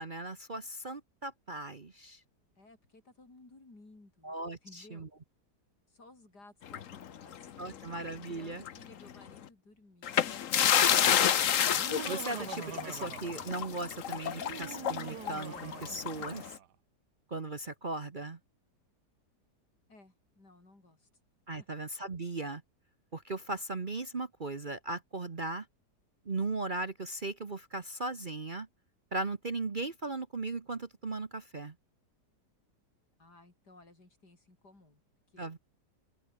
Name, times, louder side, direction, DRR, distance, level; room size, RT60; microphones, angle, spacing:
voice 1, 0.0-2.2 4.2-5.1 7.6-8.6 12.1-16.6 17.3-18.4 21.5-22.6 23.1-25.6 26.2-28.7 29.1-31.7 35.4-35.6, right 3 dB, 30° right, 1.2 m, -37 dB
voice 2, 2.6-4.3 4.6-5.1 5.9-10.7 12.3-12.5 19.9-21.1 21.6-21.8 33.2-35.0 35.3-35.5, left 2 dB, 70° left, 6.8 m, -58 dB
sound 1, 6.7-8.2 8.6-8.8 10.0-16.5, left 9 dB, 55° left, 1.2 m, -30 dB
Laughter, 11.7-13.8 14.3-16.7, right 10 dB, 70° right, 1.6 m, -45 dB
open air
omnidirectional pair, 1.8 m